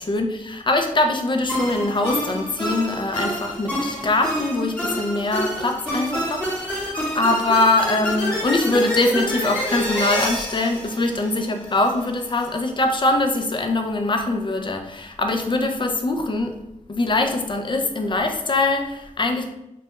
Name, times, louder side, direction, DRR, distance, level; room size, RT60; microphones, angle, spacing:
voice 1, 0.0-16.6 16.9-19.4, left 2 dB, 35° left, 4 dB, 0.4 m, -23 dB
sound 1, 1.5-11.9, equal, 10° left, 1.0 m, -27 dB
2.2 x 2.1 x 2.9 m, 0.86 s
cardioid pair, 55°, 14 cm